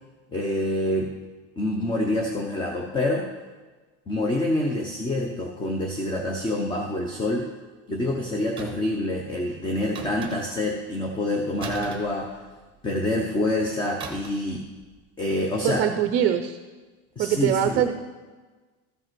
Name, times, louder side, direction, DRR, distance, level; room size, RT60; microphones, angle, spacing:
voice 1, 0.3-1.1 1.6-3.3 4.1-7.5 7.9-12.3 12.8-14.6 15.2-15.8 17.2-17.9, left 1 dB, 15° left, 2 dB, 0.7 m, -26 dB
sound 1, 8.6-9.0 9.9-10.7 11.6-12.8 14.0-14.5 14.8-15.0, right 5 dB, 15° right, 1.0 m, -38 dB
voice 2, 15.6-16.6 17.2-17.9, right 10 dB, 35° right, 7 dB, 0.6 m, -22 dB
13.5 x 5.3 x 6.0 m, 1.3 s
cardioid pair, 165°, 31 cm